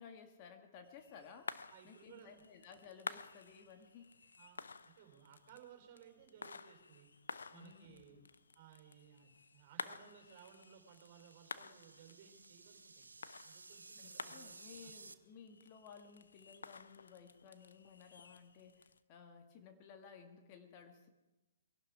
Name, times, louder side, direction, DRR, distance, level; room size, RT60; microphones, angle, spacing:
voice 1, 0.0-1.5 1.8-4.1 7.5-8.3 14.0-21.1, left 6 dB, 35° left, 6 dB, 1.7 m, -57 dB
sound 1, 0.8-19.0, left 5 dB, 80° left, 0.6 m, -52 dB
voice 2, 1.7-2.5 4.3-7.1 7.5-8.2 8.6-13.0 13.4-14.5 14.8-14.9, right 9 dB, 45° right, 4 dB, 4.0 m, -60 dB
sound 2, 10.0-15.1, right 3 dB, 85° right, 0.8 m, -57 dB
23.5 x 12.0 x 4.8 m, 1.1 s
hypercardioid pair, 130°, 0 cm